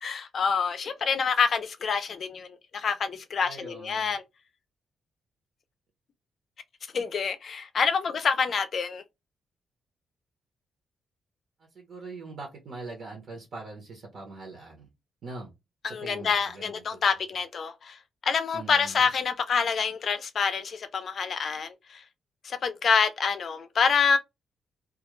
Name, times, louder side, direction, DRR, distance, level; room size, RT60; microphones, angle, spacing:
voice 1, 0.0-4.2 6.9-9.0 15.8-22.0 22.4-24.2, left 6 dB, 45° left, 0.4 m, -27 dB
voice 2, 3.4-4.2 11.6-14.9 15.2-15.5 16.0-17.0 18.5-19.1, right 3 dB, 55° right, 0.8 m, -42 dB
2.3 x 2.1 x 3.0 m
wide cardioid pair, 150°, 0 cm